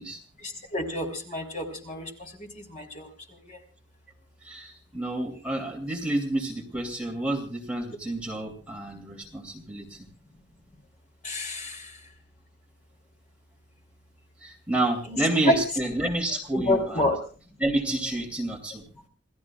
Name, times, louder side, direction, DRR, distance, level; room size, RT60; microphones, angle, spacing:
voice 1, 0.4-3.6 11.2-12.0 15.1-15.2 15.5-15.6 16.5-17.2, left 1 dB, 40° left, 3 dB, 3.3 m, -29 dB
voice 2, 4.4-10.1 14.4-17.1 17.6-18.8, right 1 dB, 5° right, 0 dB, 2.8 m, -29 dB
28.5 x 17.0 x 2.4 m, 0.40 s
head